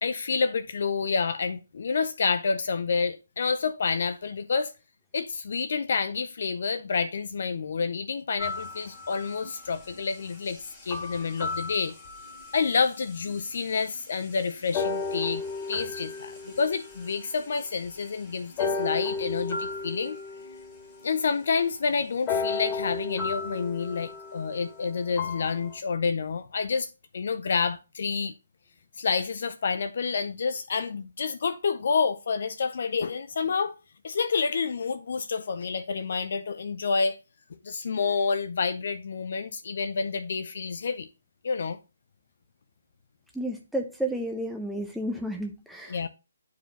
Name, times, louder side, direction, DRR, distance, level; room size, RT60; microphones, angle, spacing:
voice 1, 0.0-4.7 5.1-10.6 10.8-11.9 12.5-15.4 15.7-20.2 21.0-28.3 29.0-33.8 34.0-37.2 37.6-41.1 41.4-41.8 45.9-46.1, left 5 dB, 60° left, 0.5 m, -28 dB
sound 1, 8.4-9.5 10.9-12.6 13.3-13.4 14.7-17.6 18.6-21.2 22.3-25.7, left 4 dB, 20° left, 1.7 m, -33 dB
voice 2, 43.3-46.0, right 1 dB, ahead, 0.5 m, -32 dB
9.1 x 4.7 x 2.7 m
hypercardioid pair, 155°, 0 cm